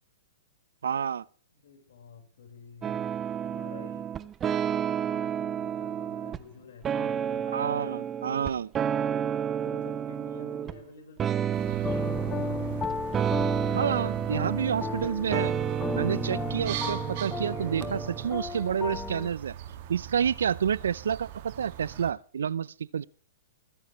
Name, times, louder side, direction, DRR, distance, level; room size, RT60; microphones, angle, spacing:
voice 1, 0.8-1.2 7.5-8.7 13.7-15.5 15.9-19.5 19.9-23.1, right 8 dB, 80° right, 0.5 m, -29 dB
voice 2, 1.5-3.1 3.4-4.1 4.4-7.5 9.6-12.1 13.1-14.5, left 4 dB, 70° left, 4.7 m, -50 dB
sound 1, 2.8-6.4 6.8-10.8 11.2-18.3, right 9 dB, 20° right, 0.5 m, -31 dB
sound 2, 11.5-22.1, right 11 dB, 50° right, 2.0 m, -41 dB
sound 3, 11.8-19.3, left 5 dB, 15° left, 0.7 m, -35 dB
22.5 x 10.5 x 3.1 m
hypercardioid pair, 135°, 0 cm